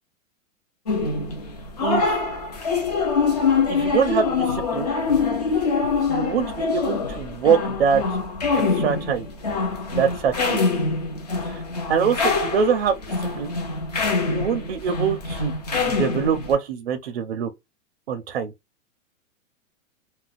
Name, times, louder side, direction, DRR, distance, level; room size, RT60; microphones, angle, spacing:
sound 1, 0.9-16.5, left 4 dB, 30° left, 0.4 m, -24 dB
voice 1, 1.8-2.2 3.7-5.0 6.1-8.0 8.6-9.3 9.9-10.6 11.4-11.6 11.9-13.0 13.4-13.6 14.3-15.5 15.8-17.5 18.1-18.5, right 7 dB, 50° right, 0.5 m, -24 dB
2.5 x 2.1 x 3.8 m
supercardioid pair, 180°, 40 cm